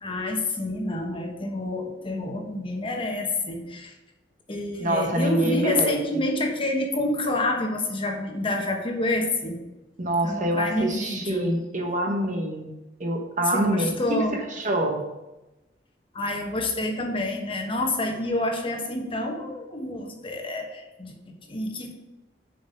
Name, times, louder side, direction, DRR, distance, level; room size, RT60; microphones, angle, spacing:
voice 1, 0.0-3.9 4.5-9.6 10.2-11.5 13.5-14.4 16.1-21.9, left 2 dB, 30° left, 2 dB, 1.2 m, -28 dB
voice 2, 4.8-5.9 10.0-12.7 13.0-13.9 14.6-15.0, right 1 dB, 45° right, 3 dB, 1.2 m, -25 dB
7.0 x 5.5 x 5.7 m, 1.0 s
head